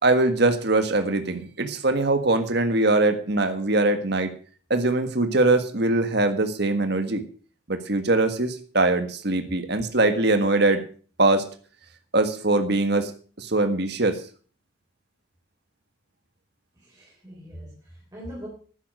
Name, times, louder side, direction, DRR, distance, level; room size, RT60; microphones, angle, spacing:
voice 1, 0.0-4.3 4.7-7.2 7.7-10.8 11.2-11.4 12.1-13.1 13.4-14.2, right 2 dB, 55° right, 7 dB, 1.7 m, -22 dB
voice 2, 16.8-18.5, equal, 20° right, -4 dB, 3.9 m, -41 dB
12.0 x 10.0 x 6.4 m, 0.42 s
head